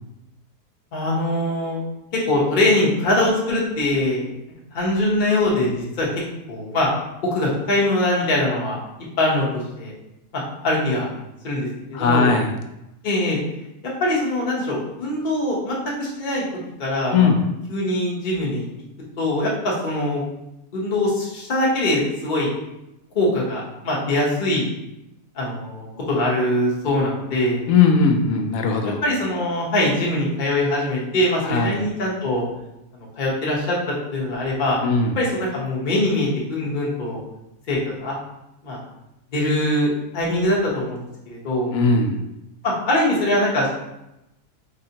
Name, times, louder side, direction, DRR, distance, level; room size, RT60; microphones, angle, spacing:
voice 1, 0.9-1.8 2.1-4.3 4.7-6.1 6.5-6.9 7.2-8.8 9.2-9.9 10.3-11.1 11.4-12.3 13.0-13.4 14.0-16.4 16.8-17.3 17.7-18.7 19.2-20.2 20.7-22.5 23.1-24.7 25.4-27.6 29.0-32.4 32.9-33.8 34.1-34.8 35.2-37.2 37.7-38.1 38.6-38.8 39.3-41.0 41.3-41.7 42.6-43.7, left 1 dB, 35° left, -4 dB, 0.9 m, -22 dB
voice 2, 11.9-12.6 17.1-17.4 27.7-29.0 31.4-31.8 34.8-35.1 41.7-42.2, left 4 dB, 70° left, 4 dB, 0.9 m, -18 dB
4.2 x 2.7 x 2.8 m, 0.89 s
omnidirectional pair, 1.7 m